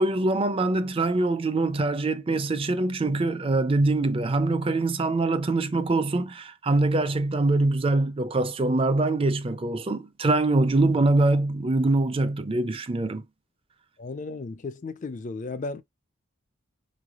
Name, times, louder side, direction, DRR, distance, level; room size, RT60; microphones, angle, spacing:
voice 1, 0.0-13.2, right 2 dB, 25° right, 0.4 m, -24 dB
voice 2, 14.0-15.8, left 3 dB, 35° left, 0.4 m, -34 dB
4.3 x 3.2 x 2.4 m
head